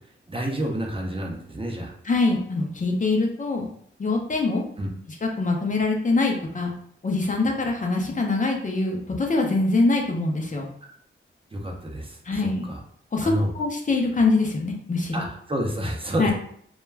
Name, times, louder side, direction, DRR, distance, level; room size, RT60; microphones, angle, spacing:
voice 1, 0.3-1.9 4.8-4.9 11.5-12.8 13.2-13.5 15.1-16.3, equal, 25° right, 0 dB, 0.5 m, -29 dB
voice 2, 2.1-3.7 4.0-4.6 5.2-6.7 7.0-10.7 12.3-12.6 13.1-15.3 16.2-16.3, left 3 dB, 40° left, 1 dB, 0.5 m, -24 dB
2.2 x 2.2 x 3.2 m, 0.64 s
wide cardioid pair, 85°, 21 cm